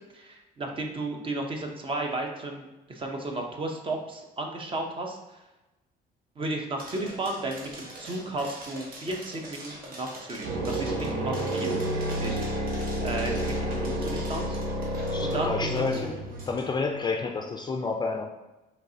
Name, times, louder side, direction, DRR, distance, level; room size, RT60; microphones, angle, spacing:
voice 1, 0.1-5.4 6.4-11.8 12.2-12.4 13.0-16.1, right 2 dB, 30° right, 2 dB, 0.7 m, -34 dB
sound 1, 6.8-16.8, right 1 dB, 60° right, 1.1 m, -44 dB
sound 2, 10.4-16.7, right 1 dB, 90° right, 0.9 m, -30 dB
voice 2, 15.1-16.1 16.5-18.2, left 4 dB, 25° left, 3 dB, 0.4 m, -29 dB
5.1 x 3.2 x 2.8 m, 1.0 s
cardioid pair, 110°, 17 cm